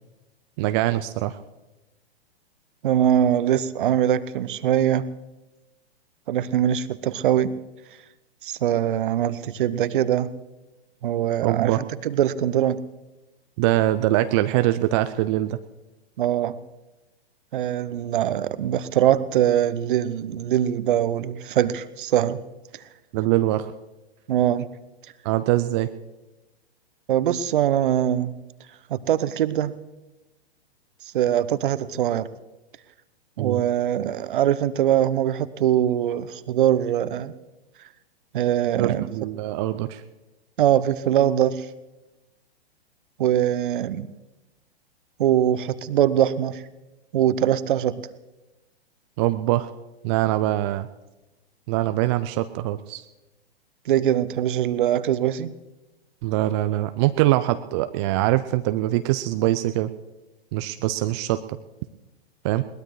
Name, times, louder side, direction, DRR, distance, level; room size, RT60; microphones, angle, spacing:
voice 1, 0.6-1.4 11.4-11.8 13.6-15.6 23.1-23.7 25.2-25.9 33.4-33.6 38.8-40.0 49.2-49.7 50.0-50.9 51.7-53.0 56.2-59.9 60.5-61.4 62.4-62.6, right 15 dB, 30° right, 9 dB, 0.4 m, -23 dB
voice 2, 2.8-5.0 6.3-7.5 8.4-10.3 11.0-11.7 12.0-12.8 16.2-16.6 17.5-22.4 24.3-24.7 27.1-28.3 28.9-29.7 31.1-32.3 33.4-37.3 38.3-39.1 40.6-41.7 43.2-44.1 45.2-46.6 47.1-48.0 53.9-55.5, right 11 dB, 55° right, 16 dB, 0.8 m, -22 dB
21.0 x 19.0 x 3.2 m, 1.1 s
figure-of-eight pair, 110°, 31 cm